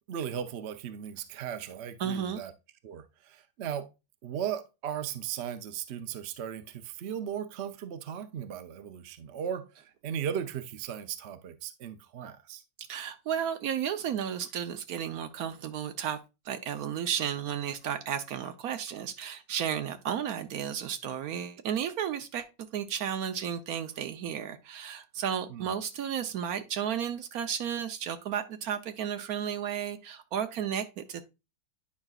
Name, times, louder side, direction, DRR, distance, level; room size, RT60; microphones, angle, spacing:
voice 1, 0.1-2.5 2.8-3.9 4.2-12.6 25.5-25.7, right 9 dB, 55° right, 0.8 m, -37 dB
voice 2, 2.0-2.4 12.9-16.2 16.4-22.5 22.7-31.3, right 9 dB, 75° right, 1.2 m, -33 dB
9.8 x 5.1 x 2.4 m
omnidirectional pair, 1.6 m